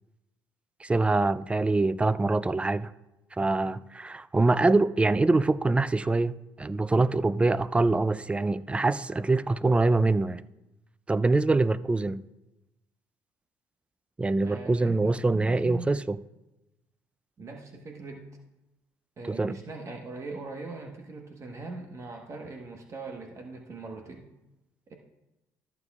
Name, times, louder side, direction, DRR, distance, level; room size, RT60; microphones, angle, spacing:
voice 1, 0.8-2.9 3.4-10.4 11.1-12.2 14.2-16.2 19.3-19.6, right 3 dB, 15° right, 0.4 m, -24 dB
voice 2, 14.4-15.9 17.4-18.3 19.2-24.3 24.9-25.0, right 3 dB, 40° right, 1.2 m, -41 dB
14.0 x 7.9 x 2.4 m
supercardioid pair, 85°, 8 cm